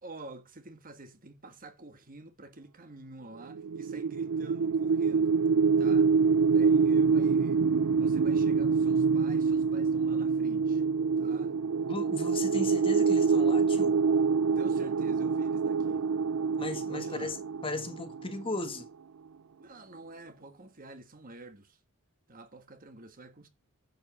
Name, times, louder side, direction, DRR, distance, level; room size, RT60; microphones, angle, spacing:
voice 1, 0.0-5.4 5.8-7.6 7.9-10.8 11.2-11.6 14.5-16.0 16.9-17.4 19.6-21.8 22.3-23.5, right 2 dB, 40° right, 1.4 m, -48 dB
sound 1, 3.5-18.5, right 5 dB, 70° right, 0.4 m, -26 dB
voice 2, 11.9-14.0 16.6-17.4 17.6-18.9, left 2 dB, 25° left, 1.3 m, -36 dB
10.5 x 5.0 x 6.0 m
head